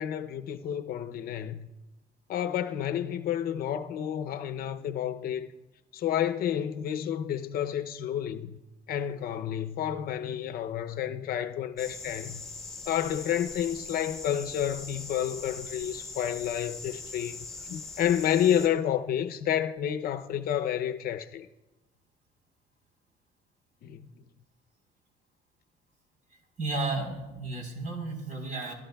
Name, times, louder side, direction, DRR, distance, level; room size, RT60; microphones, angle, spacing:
voice 1, 0.0-1.7 2.3-5.5 5.9-8.6 8.9-12.4 12.9-17.4 17.7-21.5 23.8-24.0, left 10 dB, 60° left, 0.7 m, -30 dB
sound 1, 11.8-18.7, left 3 dB, ahead, 3.1 m, -41 dB
voice 2, 26.6-28.7, right 3 dB, 50° right, 4.0 m, -33 dB
23.0 x 12.0 x 2.3 m
cardioid pair, 110°, 17 cm